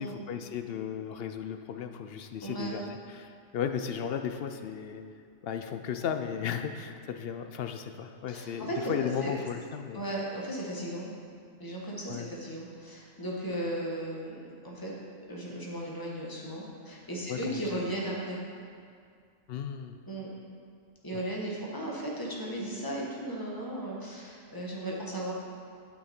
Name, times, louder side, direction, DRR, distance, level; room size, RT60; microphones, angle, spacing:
voice 1, 0.0-2.8 3.1-5.0 5.4-10.0 12.1-12.3 17.3-17.8 19.5-20.0 21.1-21.2, left 8 dB, 65° left, 7 dB, 0.7 m, -35 dB
voice 2, 2.4-2.8 8.3-9.5 9.9-11.1 11.6-14.9 15.3-18.4 20.1-20.3 21.0-25.3, right 1 dB, 20° left, -3 dB, 1.4 m, -36 dB
11.5 x 6.3 x 4.3 m, 2.3 s
omnidirectional pair, 1.2 m